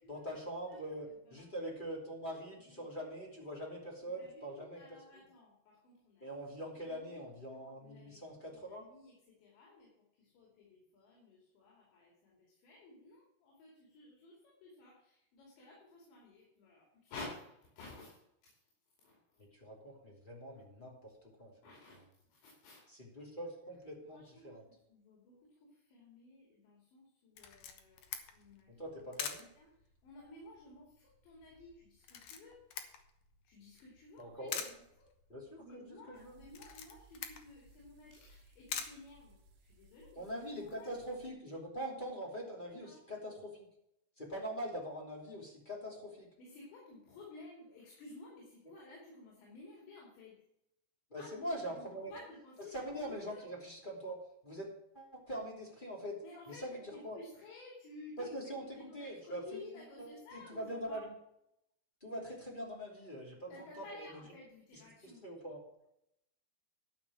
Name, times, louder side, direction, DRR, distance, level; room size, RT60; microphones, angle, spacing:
voice 1, 0.1-4.8 6.2-8.9 19.5-21.5 22.9-24.6 28.7-29.5 34.2-34.7 35.3-36.4 40.1-43.7 44.2-46.3 51.1-52.1 52.7-54.2 54.4-56.2 56.5-57.2 58.2-61.1 62.0-64.2 64.7-65.6, equal, 15° left, -2 dB, 2.3 m, -43 dB
voice 2, 1.3-1.6 2.6-2.8 4.2-6.3 6.7-7.2 7.8-8.2 8.5-18.6 19.0-19.4 21.6-22.0 22.3-22.9 24.1-28.0 28.3-28.9 29.6-32.6 33.4-35.1 35.6-40.3 40.6-40.9 42.6-43.0 46.4-50.4 51.1-53.4 56.2-58.3 58.7-61.1 63.5-65.3, left 2 dB, 85° left, -3 dB, 5.0 m, -54 dB
Camera, 27.4-39.8, left 8 dB, 70° left, 2.2 m, -47 dB
sound 1, 36.1-41.3, right 2 dB, 65° right, 2.5 m, -63 dB
12.0 x 5.9 x 7.5 m, 0.79 s
omnidirectional pair, 5.0 m